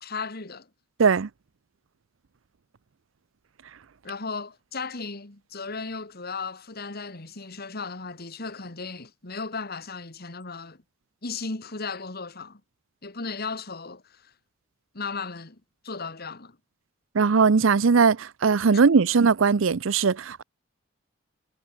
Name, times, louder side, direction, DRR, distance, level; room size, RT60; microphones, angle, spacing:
voice 1, 0.0-0.7 4.0-10.8 11.2-12.6 13.0-14.3 14.9-16.6, left 4 dB, 50° left, 2.3 m, -36 dB
voice 2, 17.1-20.4, right 5 dB, 75° right, 0.6 m, -20 dB
head